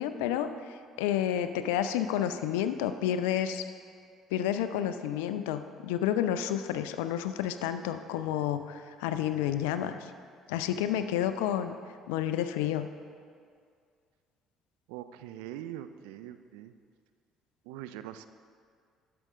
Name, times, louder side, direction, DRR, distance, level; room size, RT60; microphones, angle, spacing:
voice 1, 0.0-3.7 4.3-10.1 10.5-11.8 12.1-12.9, left 10 dB, 75° left, 10 dB, 0.4 m, -30 dB
voice 2, 14.9-16.7 17.7-18.2, right 12 dB, 75° right, 11 dB, 0.3 m, -42 dB
11.5 x 6.7 x 3.7 m, 2.1 s
hypercardioid pair, 55°, 0 cm